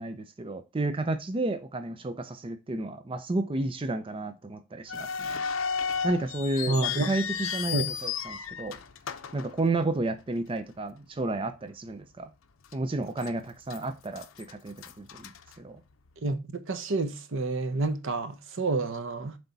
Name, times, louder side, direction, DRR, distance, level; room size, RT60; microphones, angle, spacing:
voice 1, 0.0-5.4 6.0-7.8 8.0-8.8 9.3-12.3 12.7-15.8, right 2 dB, 25° right, 0.5 m, -32 dB
sound 1, 4.9-10.2 10.5-10.6 11.3-11.6 12.0-12.1 12.7-13.3 13.7-16.1, left 7 dB, 75° left, 0.7 m, -34 dB
voice 2, 6.7-7.1 7.7-7.9 16.2-19.4, right 3 dB, 65° right, 0.9 m, -29 dB
7.8 x 3.5 x 4.0 m
head